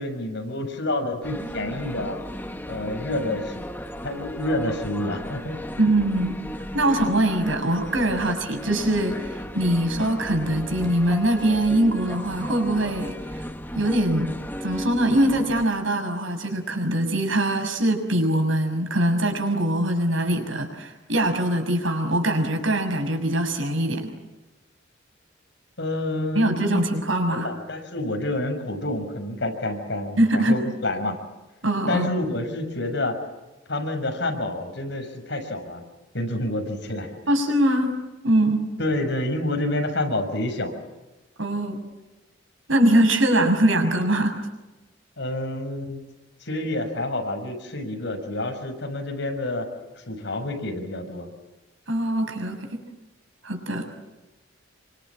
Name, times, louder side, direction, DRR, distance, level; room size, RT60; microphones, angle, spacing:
voice 1, 0.0-2.2 2.7-3.6 4.0-5.6 25.8-26.8 27.3-31.2 31.9-33.2 33.7-35.8 36.1-37.1 38.8-40.7 45.2-46.0 46.4-49.7 50.0-51.3, left 1 dB, 65° left, 5 dB, 6.5 m, -28 dB
sound 1, 1.2-15.6, equal, 10° left, 1.4 m, -35 dB
voice 2, 5.8-6.4 6.7-13.2 13.7-14.3 14.6-24.1 26.3-27.5 30.2-30.6 31.6-32.1 37.3-38.0 38.2-38.7 41.4-41.8 42.7-44.4 51.9-52.8 53.4-53.9, right 1 dB, 85° right, 5 dB, 6.6 m, -22 dB
28.5 x 25.0 x 7.5 m, 1.1 s
head